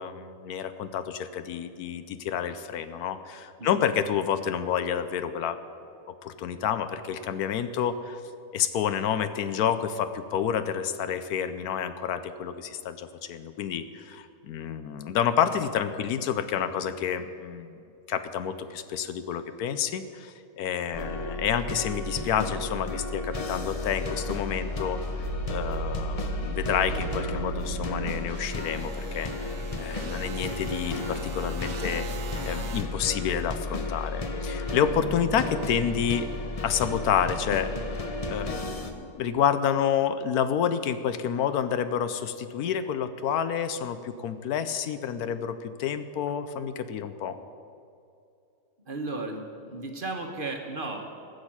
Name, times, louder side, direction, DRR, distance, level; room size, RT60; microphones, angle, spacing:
voice 1, 0.0-5.6 6.2-8.2 8.5-17.8 18.1-32.1 32.4-36.3 36.6-47.4, left 8 dB, 75° left, 11 dB, 1.2 m, -29 dB
voice 2, 3.6-3.9 48.8-51.0, right 2 dB, 40° right, 3 dB, 1.1 m, -35 dB
sound 1, 20.9-38.9, left 2 dB, 30° left, 0.7 m, -33 dB
sound 2, 25.2-32.8, right 6 dB, 85° right, 1.5 m, -38 dB
14.5 x 6.5 x 8.7 m, 2.5 s
omnidirectional pair, 1.6 m